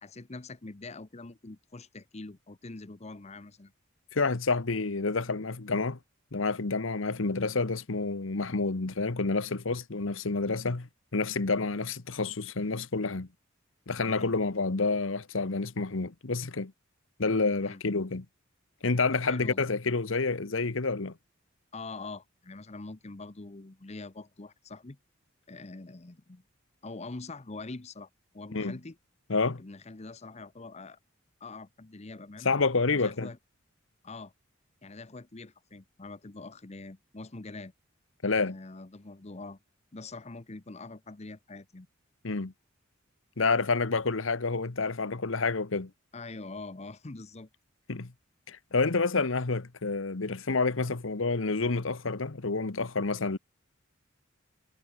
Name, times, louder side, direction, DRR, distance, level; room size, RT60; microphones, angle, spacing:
voice 1, 0.0-3.7 14.0-14.3 17.6-17.8 19.1-19.7 21.7-25.0 25.5-26.4 26.8-29.0 29.6-31.0 31.4-32.5 32.9-33.4 34.0-34.3 34.8-37.7 38.4-39.6 39.9-41.9 46.1-47.5, left 3 dB, 35° left, 0.9 m, -44 dB
voice 2, 4.1-6.0 6.3-13.3 13.9-16.7 17.2-18.2 18.8-21.1 28.5-28.8 29.3-29.6 32.4-33.3 38.2-38.6 42.2-42.5 43.4-45.9 47.9-48.1 48.5-53.4, left 3 dB, 70° left, 1.1 m, -29 dB
head